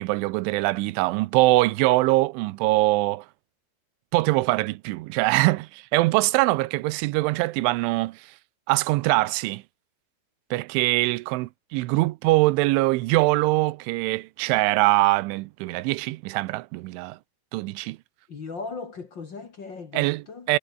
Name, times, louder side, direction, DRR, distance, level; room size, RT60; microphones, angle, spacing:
voice 1, 0.0-3.3 4.1-8.3 8.7-9.6 10.5-17.2 17.5-18.0 19.9-20.6, right 21 dB, 90° right, 3.2 m, -23 dB
voice 2, 18.3-20.5, left 4 dB, 50° left, 1.3 m, -37 dB
omnidirectional pair, 5.4 m